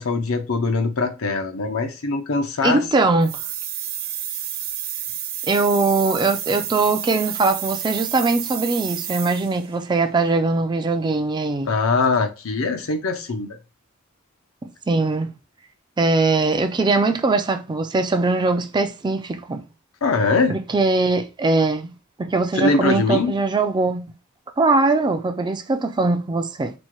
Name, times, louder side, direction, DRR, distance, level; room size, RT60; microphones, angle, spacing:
voice 1, 0.0-2.8 11.6-13.6 20.0-20.6 22.5-23.4, left 3 dB, 80° left, 0.7 m, -22 dB
voice 2, 2.6-3.4 5.4-11.7 14.6-15.3 16.0-19.6 20.5-21.9 22.2-24.1 24.6-26.7, right 3 dB, 20° right, 0.4 m, -21 dB
sound 1, 3.2-9.7, right 10 dB, 50° right, 0.7 m, -30 dB
4.3 x 2.2 x 4.6 m
head